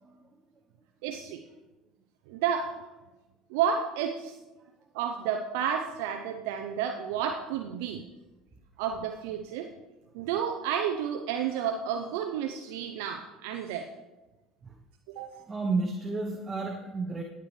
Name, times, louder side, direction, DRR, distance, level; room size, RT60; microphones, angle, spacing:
voice 1, 1.0-1.4 2.3-2.9 3.5-4.4 4.9-8.0 8.8-9.7 10.1-13.9 15.1-15.4, right 8 dB, 75° right, 5 dB, 0.6 m, -31 dB
voice 2, 15.5-17.2, right 3 dB, 25° right, 4 dB, 1.1 m, -31 dB
17.0 x 8.2 x 3.3 m, 1.1 s
hypercardioid pair, 80°, 0 cm